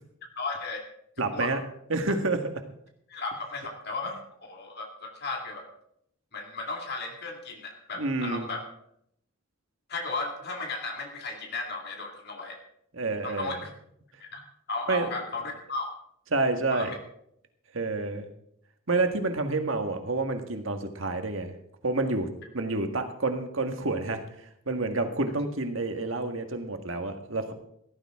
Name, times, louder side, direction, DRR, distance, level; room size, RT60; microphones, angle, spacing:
voice 1, 0.4-0.8 1.3-1.5 3.1-5.7 6.3-8.6 9.9-12.6 13.2-13.7 14.2-14.4 14.7-15.9 16.7-16.9, left 3 dB, 50° left, 1 dB, 2.3 m, -35 dB
voice 2, 1.2-1.6 1.9-2.5 7.9-8.5 12.9-13.6 14.9-15.1 16.3-16.9 17.7-18.3 18.9-21.5 21.8-22.3 22.5-24.2 24.6-27.5, right 3 dB, 65° right, 6 dB, 1.8 m, -28 dB
16.5 x 14.5 x 3.8 m, 0.72 s
head